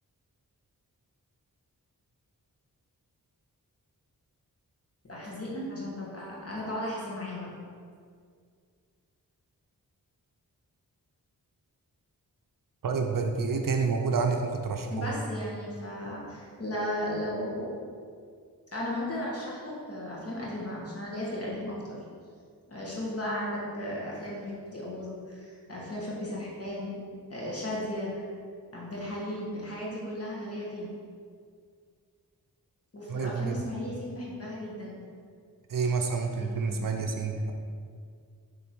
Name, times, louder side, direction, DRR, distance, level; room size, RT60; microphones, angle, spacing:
voice 1, 5.1-7.5 14.9-17.7 18.7-21.8 22.7-27.0 27.3-28.1 28.7-30.9 32.9-35.0 36.4-36.9, left 1 dB, 40° left, -5 dB, 1.4 m, -35 dB
voice 2, 12.8-15.1 33.1-33.6 35.7-37.5, right 4 dB, 65° right, 3 dB, 0.5 m, -28 dB
7.1 x 3.7 x 4.5 m, 2.1 s
wide cardioid pair, 110°, 35 cm